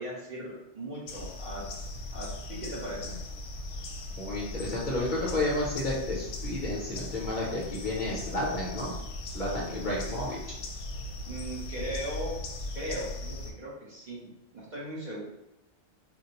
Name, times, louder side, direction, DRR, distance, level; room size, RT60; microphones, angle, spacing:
voice 1, 0.0-1.6 2.1-3.2 11.3-12.3 12.7-15.2, right 1 dB, 45° right, -7 dB, 0.9 m, -38 dB
sound 1, 1.1-13.5, left 2 dB, 80° left, 0.9 m, -38 dB
voice 2, 4.2-8.9 9.3-10.4, left 1 dB, 45° left, -5 dB, 0.8 m, -31 dB
4.4 x 2.0 x 2.8 m, 0.90 s
omnidirectional pair, 1.2 m